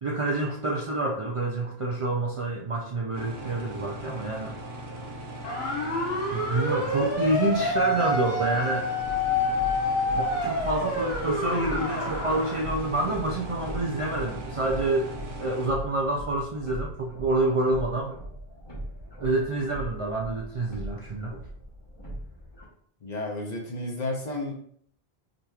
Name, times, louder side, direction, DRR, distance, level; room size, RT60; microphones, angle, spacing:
voice 1, 0.0-4.6 6.3-8.9 10.2-18.2 19.2-21.4, right 2 dB, 45° right, -2 dB, 0.4 m, -28 dB
sound 1, 3.1-15.7, right 1 dB, 80° right, 1.0 m, -39 dB
sound 2, 5.4-12.6, left 1 dB, 80° left, 1.2 m, -28 dB
sound 3, 9.0-22.6, right 1 dB, 25° left, 1.1 m, -40 dB
voice 2, 23.0-24.5, left 2 dB, 45° left, 0 dB, 0.8 m, -32 dB
5.0 x 2.9 x 2.3 m, 0.63 s
omnidirectional pair, 1.0 m